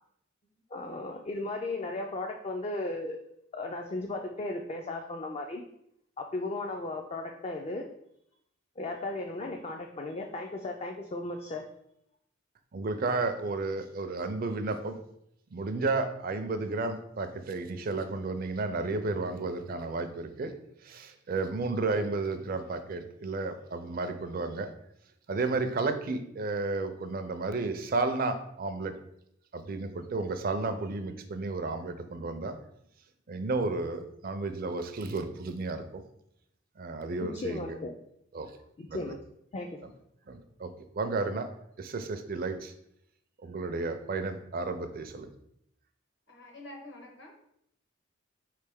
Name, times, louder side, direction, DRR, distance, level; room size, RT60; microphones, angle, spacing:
voice 1, 0.7-3.2 3.5-5.6 6.2-7.9 8.8-11.6 37.2-37.9 38.8-39.2 39.5-39.8, left 2 dB, 30° left, 2 dB, 0.3 m, -36 dB
voice 2, 12.7-15.0 15.5-20.5 20.8-24.7 25.3-28.9 29.5-32.6 33.3-36.0 36.8-37.8 38.3-38.5 38.9-39.1 40.3-41.5 41.8-42.7 43.4-45.3, right 3 dB, 45° right, 8 dB, 0.4 m, -32 dB
voice 3, 46.3-47.5, left 1 dB, 60° left, 1 dB, 1.1 m, -48 dB
4.5 x 3.3 x 3.5 m, 0.74 s
head